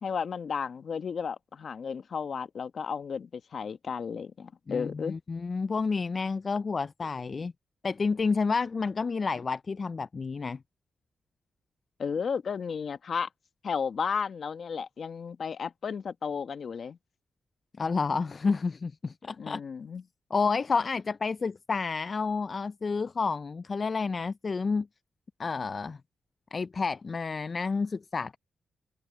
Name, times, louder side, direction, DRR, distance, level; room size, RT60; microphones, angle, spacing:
voice 1, 0.0-5.2 12.0-13.3 13.6-17.0 19.4-20.0, left 6 dB, 60° left, 1.3 m, -33 dB
voice 2, 4.7-7.5 7.8-10.6 17.8-19.6 20.3-24.9 25.4-26.0 26.5-28.4, left 4 dB, 40° left, 0.3 m, -30 dB
cardioid pair, 95°, 0 cm